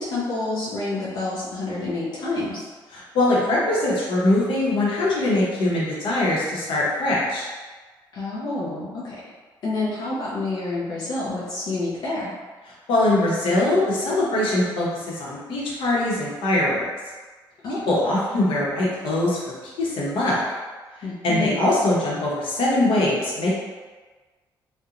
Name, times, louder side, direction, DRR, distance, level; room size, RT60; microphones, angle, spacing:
voice 1, 0.0-2.6 8.1-9.3 9.6-12.4 17.6-17.9 21.0-21.6, left 2 dB, 55° left, -7 dB, 0.5 m, -28 dB
voice 2, 3.1-7.5 12.9-14.9 15.2-16.9 17.9-19.4 19.8-20.4 21.2-23.5, left 1 dB, 85° left, -6 dB, 0.8 m, -22 dB
2.4 x 2.1 x 2.8 m, 1.4 s
cardioid pair, 180°, 9 cm